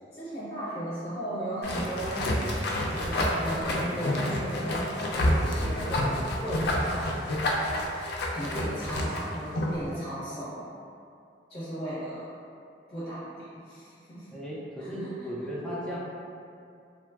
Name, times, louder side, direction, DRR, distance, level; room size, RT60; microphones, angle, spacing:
voice 1, 0.1-2.2 2.8-10.6 11.5-12.3 12.9-14.3 14.8-15.1, right 1 dB, 35° left, -12 dB, 0.8 m, -36 dB
sound 1, 1.6-9.8, left 1 dB, 65° left, 0.3 m, -29 dB
voice 2, 14.3-16.0, equal, 5° left, -8 dB, 0.5 m, -35 dB
2.9 x 2.3 x 2.2 m, 2.4 s
head